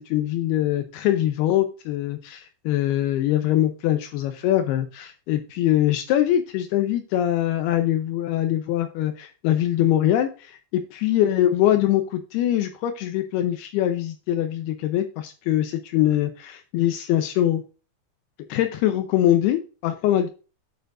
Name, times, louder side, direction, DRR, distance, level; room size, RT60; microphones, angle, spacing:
voice 1, 0.0-17.6 18.5-20.3, left 12 dB, 85° left, 7 dB, 2.3 m, -23 dB
9.1 x 6.9 x 2.5 m, 0.33 s
omnidirectional pair, 5.3 m